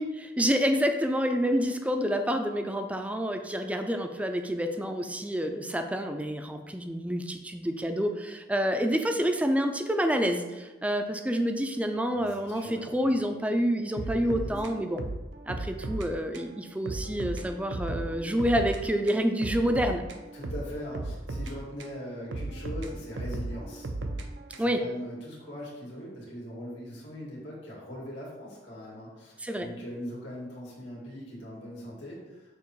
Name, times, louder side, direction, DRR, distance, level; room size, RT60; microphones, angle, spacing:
voice 1, 0.0-15.0 15.5-20.0 24.6-24.8 29.4-29.7, equal, 10° right, 6 dB, 0.4 m, -28 dB
voice 2, 12.5-13.2 14.0-14.7 20.3-23.9 24.5-32.4, equal, 90° left, -5 dB, 2.0 m, -40 dB
sound 1, 14.0-16.1 16.3-16.5 16.9-18.8 19.1-22.0 22.3-24.9, right 2 dB, 85° right, 0.6 m, -35 dB
6.9 x 2.9 x 4.6 m, 1.1 s
head